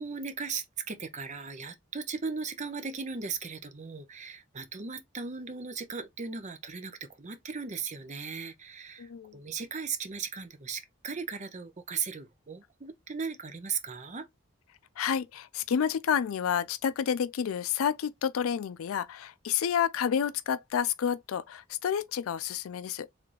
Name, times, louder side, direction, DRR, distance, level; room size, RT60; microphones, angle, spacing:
voice 1, 0.0-14.3, right 5 dB, 35° right, 0.6 m, -37 dB
voice 2, 9.0-9.4 15.0-23.1, left 8 dB, 80° left, 0.4 m, -29 dB
3.7 x 3.3 x 3.2 m
head